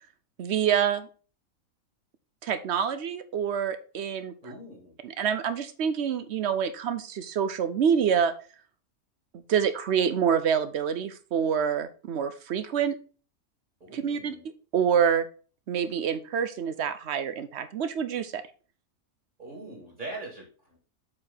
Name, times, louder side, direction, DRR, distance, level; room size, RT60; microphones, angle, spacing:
voice 1, 0.4-1.1 2.4-4.3 5.0-8.3 9.3-13.0 13.9-14.3 14.7-15.3 15.7-18.4, right 8 dB, 60° right, 11 dB, 0.9 m, -26 dB
voice 2, 4.4-5.0 13.8-14.5 19.4-20.8, right 2 dB, 35° right, -1 dB, 2.2 m, -42 dB
7.5 x 4.6 x 3.9 m, 0.38 s
omnidirectional pair, 1.4 m